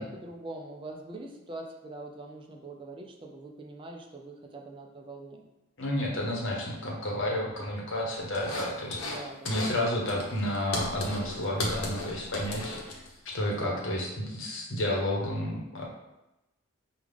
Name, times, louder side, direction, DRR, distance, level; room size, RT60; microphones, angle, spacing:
voice 1, 0.0-5.4 8.9-9.7 13.4-13.9, right 2 dB, 25° right, 1 dB, 0.4 m, -43 dB
voice 2, 5.8-9.0 9.5-15.8, left 1 dB, 60° left, -2 dB, 0.9 m, -31 dB
sound 1, 8.3-9.2 9.5-9.8 10.1-13.3, left 1 dB, 90° left, 0.9 m, -35 dB
5.2 x 2.4 x 3.4 m, 0.98 s
head